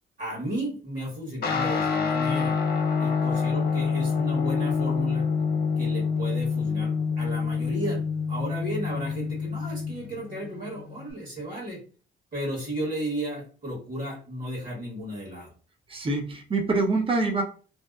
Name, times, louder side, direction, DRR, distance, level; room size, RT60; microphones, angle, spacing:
voice 1, 0.2-2.6 3.0-5.2 5.8-8.0 8.3-11.8 12.3-15.5, right 1 dB, 45° right, -3 dB, 1.4 m, -34 dB
Guitar, 1.4-11.1, left 5 dB, 50° left, 0.6 m, -27 dB
voice 2, 15.9-17.4, right 3 dB, 25° right, 2 dB, 0.6 m, -25 dB
2.7 x 2.1 x 2.3 m, 0.39 s
cardioid pair, 90°, 20 cm